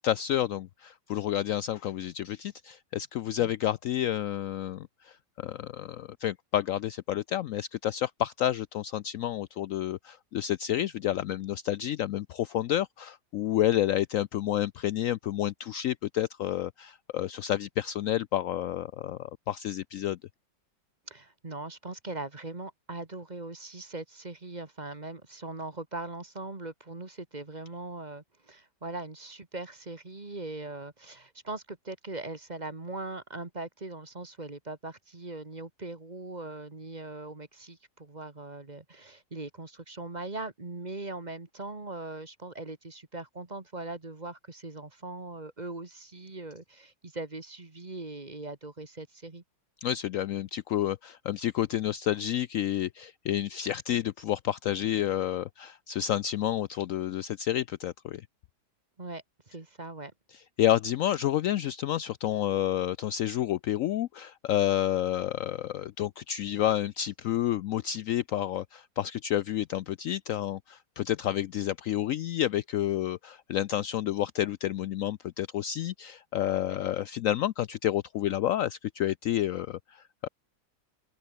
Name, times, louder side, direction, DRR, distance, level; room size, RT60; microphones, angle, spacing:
voice 1, 0.0-20.2 49.8-58.2 60.6-80.3, left 12 dB, 85° left, 0.7 m, -30 dB
voice 2, 21.1-49.4 59.0-60.1, right 2 dB, 25° right, 1.9 m, -40 dB
open air
omnidirectional pair, 2.0 m